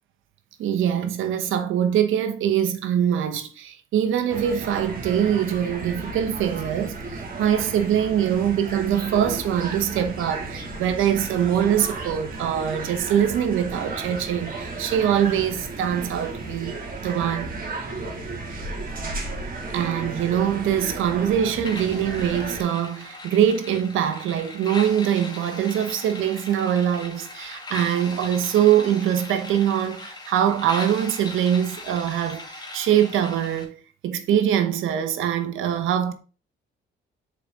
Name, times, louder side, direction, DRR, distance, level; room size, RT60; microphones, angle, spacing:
voice 1, 0.6-17.5 19.7-33.8 34.0-36.1, right 9 dB, 85° right, 1.1 m, -23 dB
sound 1, 4.3-22.6, right 3 dB, 45° right, 2.8 m, -34 dB
sound 2, 21.6-33.6, left 2 dB, 20° left, 2.2 m, -39 dB
6.9 x 5.0 x 3.9 m
cardioid pair, 90°, 20 cm